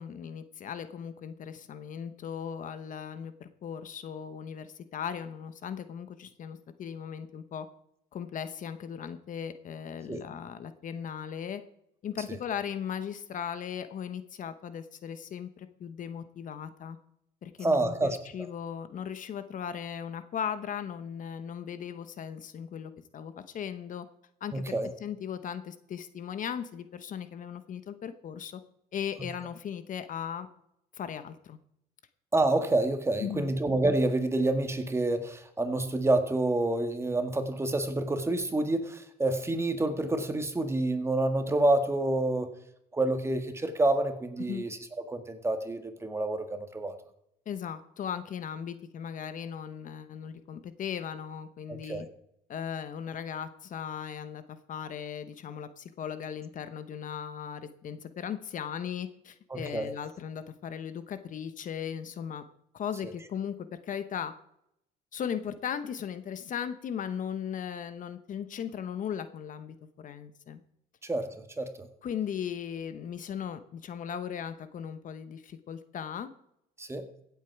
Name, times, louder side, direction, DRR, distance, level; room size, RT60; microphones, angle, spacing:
voice 1, 0.0-7.7 8.1-11.6 12.0-17.0 17.4-24.1 24.4-28.6 28.9-30.5 30.9-31.6 33.2-33.5 44.5-44.6 47.5-52.1 52.5-62.4 62.7-64.3 65.1-70.6 72.0-76.3, left 8 dB, 50° left, 11 dB, 1.0 m, -37 dB
voice 2, 17.6-18.2 24.5-24.9 32.3-42.5 42.9-44.8 45.1-46.9 51.7-52.0 59.5-59.9 71.0-71.9 76.8-77.1, right 2 dB, 15° right, 7 dB, 1.7 m, -28 dB
16.0 x 8.3 x 4.7 m, 0.76 s
cardioid pair, 110°, 17 cm